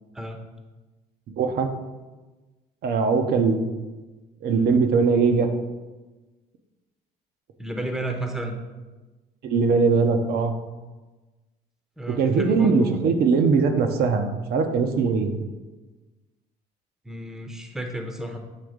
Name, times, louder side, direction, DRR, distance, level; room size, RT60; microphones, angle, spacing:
voice 1, 1.4-1.7 2.8-3.6 4.4-5.5 9.4-10.5 12.1-15.3, right 4 dB, 65° right, 6 dB, 0.8 m, -21 dB
voice 2, 7.6-8.6 12.0-13.0 17.0-18.4, right 1 dB, 5° right, 4 dB, 0.7 m, -32 dB
7.5 x 3.5 x 5.0 m, 1.2 s
cardioid pair, 110°, 17 cm